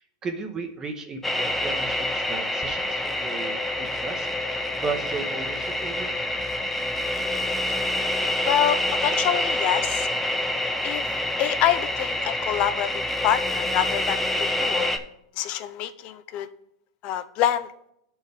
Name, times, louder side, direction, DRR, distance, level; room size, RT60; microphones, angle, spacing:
voice 1, 0.2-4.3 4.6-6.1, right 4 dB, 25° right, 3 dB, 0.9 m, -35 dB
sound 1, 1.2-15.0, left 1 dB, 5° left, 0.7 m, -27 dB
voice 2, 8.4-10.1 10.8-11.0 11.4-15.0 15.4-16.5 17.0-17.7, left 10 dB, 50° left, 12 dB, 0.6 m, -26 dB
12.5 x 4.4 x 3.5 m, 0.76 s
hypercardioid pair, 115°, 2 cm